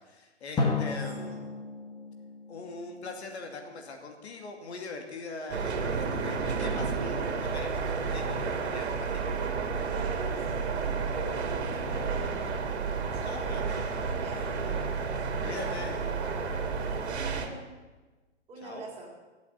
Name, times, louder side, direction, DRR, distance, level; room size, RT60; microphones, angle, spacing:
voice 1, 0.0-1.6 2.5-9.3 13.2-14.0 15.4-16.0 18.6-18.9, left 3 dB, 70° left, 4 dB, 2.6 m, -42 dB
Drum, 0.6-3.3, left 3 dB, 15° left, 1.4 m, -33 dB
sound 1, 5.5-17.5, right 5 dB, 65° right, 2.3 m, -31 dB
voice 2, 9.9-12.7 13.0-14.9 15.3-17.6 18.5-19.1, right 2 dB, 15° right, -2 dB, 3.6 m, -43 dB
15.5 x 8.2 x 8.4 m, 1.2 s
hypercardioid pair, 145°, 34 cm